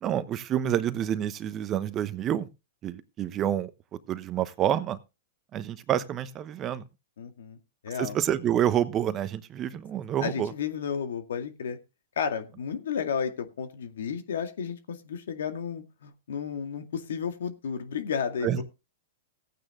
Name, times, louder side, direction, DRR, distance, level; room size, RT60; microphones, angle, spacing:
voice 1, 0.0-2.5 2.8-3.7 4.1-5.0 5.5-6.8 8.0-10.5 18.4-18.6, right 10 dB, 30° right, 13 dB, 1.0 m, -28 dB
voice 2, 7.2-7.6 7.8-8.2 10.2-11.8 12.2-18.6, left 7 dB, 80° left, 8 dB, 2.1 m, -32 dB
15.0 x 9.0 x 3.8 m, 0.28 s
hypercardioid pair, 130°, 0 cm